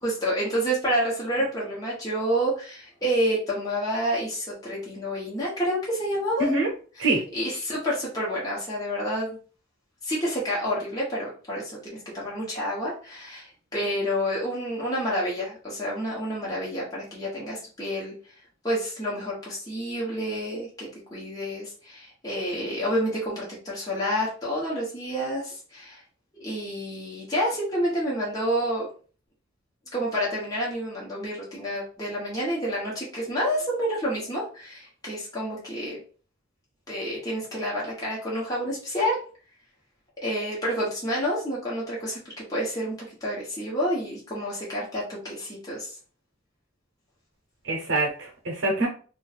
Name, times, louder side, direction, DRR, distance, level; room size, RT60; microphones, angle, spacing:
voice 1, 0.0-6.5 7.0-7.1 7.3-9.4 10.0-18.1 18.6-26.0 26.4-28.9 29.9-36.0 36.9-39.2 40.2-45.9, equal, 20° left, -6 dB, 1.0 m, -29 dB
voice 2, 47.6-48.9, right 2 dB, 70° right, -1 dB, 0.8 m, -24 dB
2.6 x 2.4 x 4.0 m, 0.40 s
head